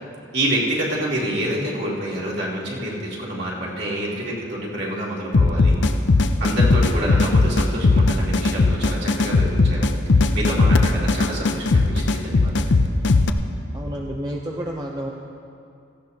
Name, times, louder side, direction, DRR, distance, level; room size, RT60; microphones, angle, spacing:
voice 1, 0.3-5.8 6.4-9.9 10.3-12.9, right 1 dB, 55° right, -5 dB, 2.7 m, -27 dB
sound 1, 5.3-13.3, left 3 dB, 60° left, 0.6 m, -18 dB
voice 2, 6.9-7.2 13.7-15.1, equal, 20° right, -1 dB, 0.6 m, -30 dB
17.0 x 15.5 x 2.9 m, 2.5 s
head